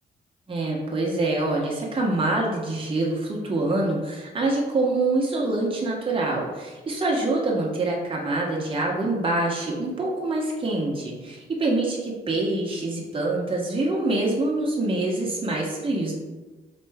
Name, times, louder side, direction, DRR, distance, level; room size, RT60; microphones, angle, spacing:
voice 1, 0.5-16.1, right 2 dB, 30° right, -3 dB, 1.0 m, -25 dB
4.2 x 3.3 x 3.4 m, 1.2 s
cardioid pair, 80°, 19 cm